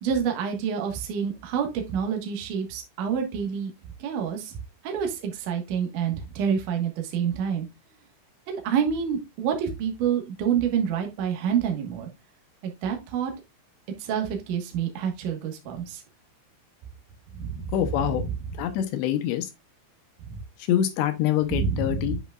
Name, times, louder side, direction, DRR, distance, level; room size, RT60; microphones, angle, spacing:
voice 1, 0.0-3.7 4.0-4.6 4.8-7.7 8.5-12.1 12.6-13.3 14.0-16.0 17.3-17.7 18.1-18.2 20.2-20.4 21.5-22.2, right 7 dB, 65° right, 2.1 m, -28 dB
voice 2, 17.7-18.2 18.6-19.5 20.7-22.2, left 11 dB, 80° left, 2.6 m, -25 dB
8.2 x 5.8 x 2.3 m
omnidirectional pair, 5.6 m